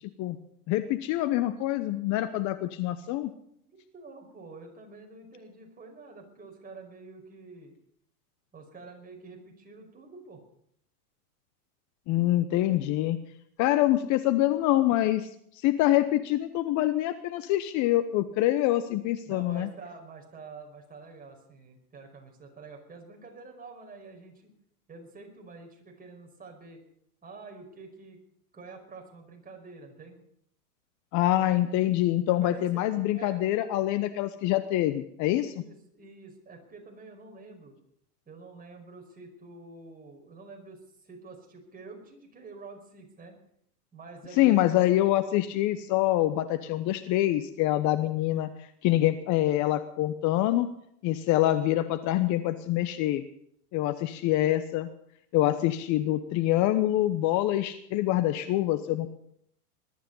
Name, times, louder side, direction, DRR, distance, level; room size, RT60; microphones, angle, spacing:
voice 1, 0.7-3.3 12.1-13.2 13.6-19.7 31.1-35.5 44.4-50.7 51.0-53.2 53.7-54.9 55.3-59.1, left 14 dB, 40° left, 12 dB, 1.0 m, -25 dB
voice 2, 3.7-7.7 8.5-10.4 19.3-24.5 24.9-26.8 27.2-28.2 28.5-30.2 32.3-32.9 33.1-33.4 35.3-37.8 38.3-43.3 43.9-44.9 46.5-46.9, right 3 dB, 20° right, 2 dB, 5.2 m, -47 dB
21.0 x 12.5 x 5.5 m, 0.68 s
hypercardioid pair, 110°, 45 cm